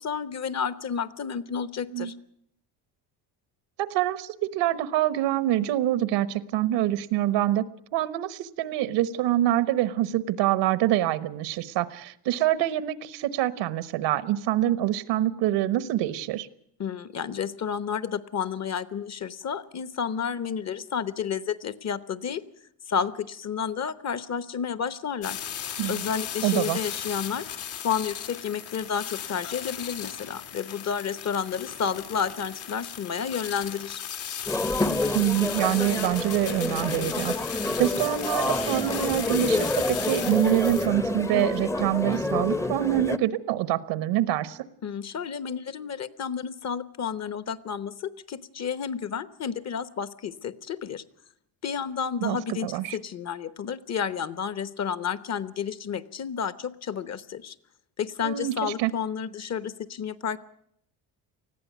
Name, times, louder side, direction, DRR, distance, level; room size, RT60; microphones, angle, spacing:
voice 1, 0.0-2.1 16.8-22.4 22.9-25.4 25.9-27.5 27.8-34.0 44.8-51.0 51.6-57.5 58.0-60.4, left 7 dB, 40° left, 15 dB, 1.0 m, -31 dB
voice 2, 3.8-7.7 7.9-16.5 25.8-26.0 26.4-26.8 35.1-44.6 52.2-53.0 58.2-58.9, right 13 dB, 80° right, 15 dB, 1.2 m, -25 dB
sound 1, 25.2-40.9, left 9 dB, 80° left, 3.9 m, -36 dB
sound 2, 34.5-43.2, left 2 dB, 5° left, 0.7 m, -28 dB
20.0 x 14.5 x 9.3 m, 0.72 s
cardioid pair, 115°, 42 cm